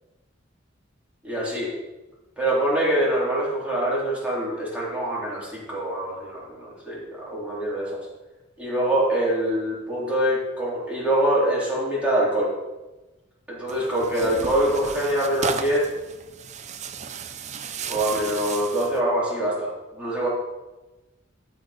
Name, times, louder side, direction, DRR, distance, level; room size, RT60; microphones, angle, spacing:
voice 1, 1.2-1.7 2.4-8.1 8.6-12.5 13.5-15.9 17.9-20.3, right 1 dB, 5° right, -7 dB, 3.3 m, -24 dB
Tearing, 13.7-19.0, right 6 dB, 35° right, 0.5 m, -34 dB
12.5 x 4.4 x 5.0 m, 1.1 s
head